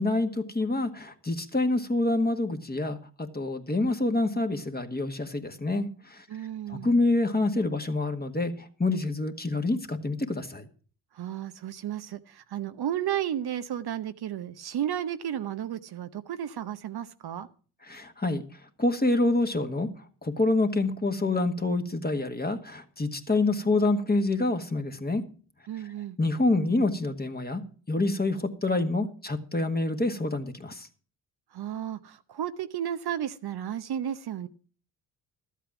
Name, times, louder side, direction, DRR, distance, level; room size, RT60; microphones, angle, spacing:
voice 1, 0.0-6.2 6.7-10.7 17.9-18.4 18.8-19.9 20.2-25.2 26.2-27.6 27.9-30.9, left 2 dB, 20° left, 1.7 m, -27 dB
voice 2, 6.3-6.9 11.1-17.5 25.7-26.2 31.5-34.5, right 10 dB, 55° right, 0.8 m, -33 dB
12.5 x 8.3 x 6.0 m
hypercardioid pair, 45°, 47 cm